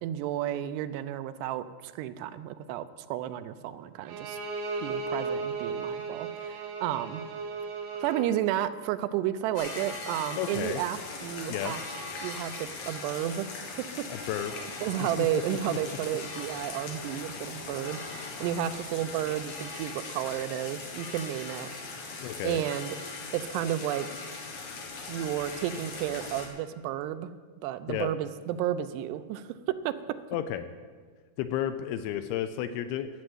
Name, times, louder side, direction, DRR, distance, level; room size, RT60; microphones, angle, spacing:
voice 1, 0.0-4.4 4.8-7.2 8.0-14.3 14.6-22.2 22.4-23.0 23.3-24.2 25.1-27.3 27.6-30.2, right 12 dB, 85° right, 12 dB, 2.7 m, -32 dB
Bowed string instrument, 4.1-8.3, right 4 dB, 70° right, 2.3 m, -35 dB
sound 1, 9.5-26.5, left 3 dB, 60° left, 2.4 m, -40 dB
voice 2, 10.4-10.8 11.5-11.7 14.1-14.6 15.5-16.0 22.2-22.6 27.9-28.1 30.3-30.7 31.4-33.1, left 11 dB, 80° left, 10 dB, 2.4 m, -32 dB
11.5 x 7.5 x 7.9 m, 1.5 s
omnidirectional pair, 4.8 m